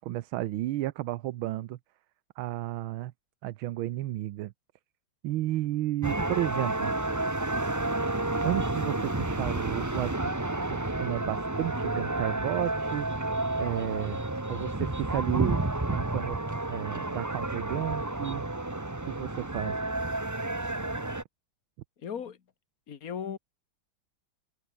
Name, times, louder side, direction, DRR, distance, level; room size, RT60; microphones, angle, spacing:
voice 1, 0.0-1.8 2.4-3.1 3.4-4.5 5.2-7.0 8.4-10.4 10.7-13.2 13.5-14.2 14.5-15.6 15.9-16.4 16.7-18.4 19.0-19.8, right 15 dB, 85° right, 1.6 m, -32 dB
sound 1, 6.0-21.2, right 2 dB, 10° right, 0.9 m, -30 dB
voice 2, 22.0-22.4 22.9-23.4, left 7 dB, 45° left, 1.9 m, -36 dB
omnidirectional pair, 2.2 m